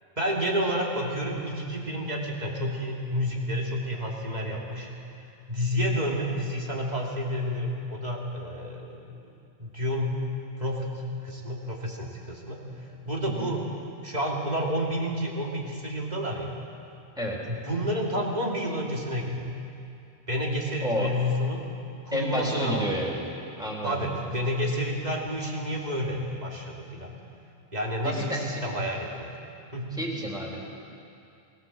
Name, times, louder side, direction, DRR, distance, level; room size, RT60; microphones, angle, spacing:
voice 1, 0.2-4.9 5.5-9.0 9.6-10.2 10.6-12.6 13.0-13.6 14.0-16.5 17.5-19.5 20.3-21.6 22.0-22.9 23.8-27.1 27.7-29.3 29.7-30.0, equal, 40° right, -2 dB, 2.9 m, -30 dB
voice 2, 20.8-21.1 22.1-23.3 23.6-24.3 28.0-28.6 29.9-30.8, equal, 5° right, -4 dB, 3.6 m, -31 dB
20.0 x 17.0 x 7.6 m, 2.6 s
omnidirectional pair, 1.1 m